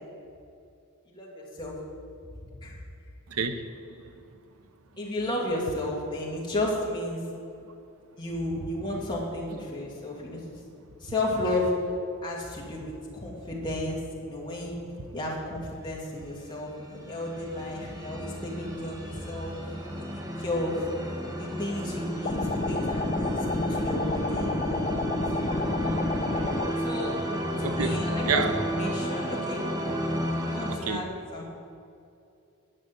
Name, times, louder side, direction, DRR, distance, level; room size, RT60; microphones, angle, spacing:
voice 1, 1.1-1.8 2.6-2.8 5.0-7.2 8.2-10.4 11.0-11.7 12.2-14.8 15.1-19.5 20.1-20.9 21.4-25.1 26.8-27.2 27.6-28.4 28.8-29.6 30.4-31.1 31.3-31.6, left 1 dB, 20° left, -4 dB, 2.3 m, -33 dB
voice 2, 3.3-3.7 27.6-28.6 30.7-31.0, right 5 dB, 80° right, 8 dB, 0.8 m, -29 dB
sound 1, 16.4-30.8, equal, 15° right, 1.1 m, -32 dB
sound 2, 22.2-26.7, left 2 dB, 35° left, 0.6 m, -29 dB
11.0 x 6.3 x 8.0 m, 2.6 s
head